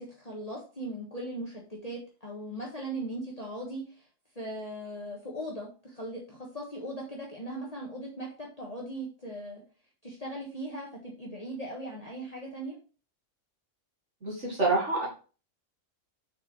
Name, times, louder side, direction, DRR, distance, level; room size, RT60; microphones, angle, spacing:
voice 1, 0.0-4.1 4.3-9.6 10.0-12.8, right 1 dB, 30° left, -3 dB, 1.5 m, -39 dB
voice 2, 14.2-15.1, right 3 dB, 60° right, -3 dB, 2.2 m, -27 dB
6.3 x 4.7 x 4.7 m, 0.35 s
omnidirectional pair, 1.3 m